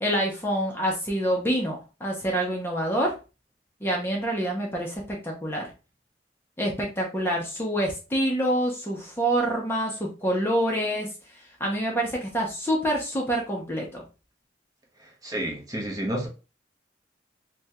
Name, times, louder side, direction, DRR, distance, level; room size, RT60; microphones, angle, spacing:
voice 1, 0.0-3.2 3.8-5.7 6.6-11.1 11.6-14.0, right 1 dB, 15° left, 0.6 m, -26 dB
voice 2, 15.0-16.3, right 1 dB, 20° right, 0.7 m, -31 dB
3.4 x 2.2 x 2.7 m
head